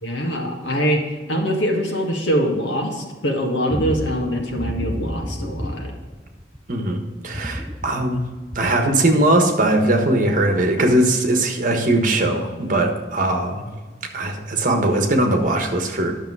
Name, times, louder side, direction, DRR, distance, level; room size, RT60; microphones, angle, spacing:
voice 1, 0.0-1.0 1.3-5.9, equal, 85° left, 2 dB, 1.7 m, -23 dB
sound 1, 3.7-6.7 7.2-8.9 9.4-9.5, equal, ahead, 0.5 m, -30 dB
voice 2, 6.7-7.0 7.2-8.2 8.5-13.6 14.1-16.1, right 1 dB, 45° right, 3 dB, 1.4 m, -20 dB
11.0 x 6.6 x 4.8 m, 1.4 s
head